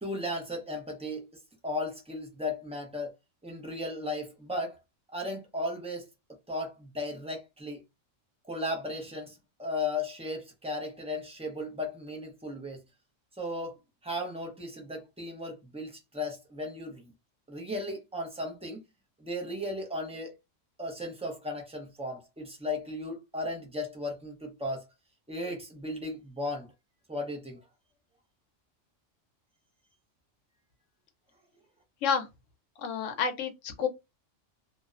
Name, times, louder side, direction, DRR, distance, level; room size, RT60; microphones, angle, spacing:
voice 1, 0.0-1.3 1.6-3.1 3.4-4.8 5.1-6.1 6.5-7.8 8.5-12.8 13.4-13.7 14.0-17.0 17.5-18.8 19.2-20.3 20.8-24.8 25.3-26.7 27.1-27.6, left 1 dB, 10° right, 0.3 m, -35 dB
voice 2, 32.8-33.9, left 6 dB, 75° left, 0.9 m, -29 dB
2.7 x 2.0 x 2.4 m
omnidirectional pair, 1.3 m